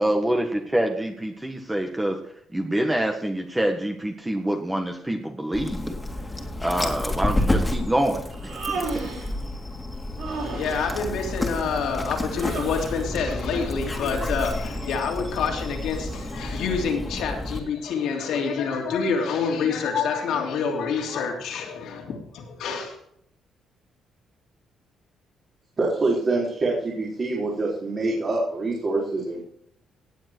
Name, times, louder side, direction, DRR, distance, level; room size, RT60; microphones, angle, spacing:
voice 1, 0.0-2.1 2.5-5.9 6.6-8.2, right 1 dB, 10° right, 3 dB, 1.6 m, -25 dB
Dog, 5.5-17.6, left 1 dB, 15° left, 2.5 m, -30 dB
Human voice, 8.3-9.4 10.2-10.9 12.3-13.0, right 4 dB, 75° right, 3.8 m, -33 dB
voice 2, 10.3-23.0, left 5 dB, 80° left, 2 dB, 3.2 m, -27 dB
voice 3, 25.8-29.4, right 2 dB, 40° right, -4 dB, 4.3 m, -25 dB
17.5 x 7.6 x 4.7 m, 0.71 s
cardioid pair, 90°, 0 cm